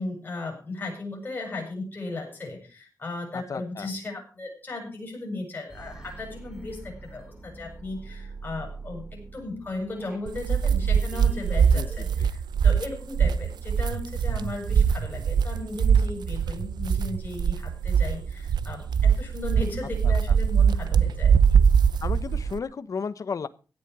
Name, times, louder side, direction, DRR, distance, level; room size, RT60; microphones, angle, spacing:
voice 1, 0.0-21.6, left 2 dB, 25° left, 0 dB, 7.5 m, -36 dB
voice 2, 3.3-3.9 11.7-11.9 12.2-12.3 20.0-20.1 22.0-23.5, left 5 dB, 50° left, 12 dB, 1.0 m, -33 dB
sound 1, 5.7-12.3, right 3 dB, 10° right, 3.6 m, -45 dB
sound 2, 10.3-22.6, right 7 dB, 85° right, 0.7 m, -22 dB
17.0 x 10.5 x 4.8 m, 0.36 s
wide cardioid pair, 155°, 7 cm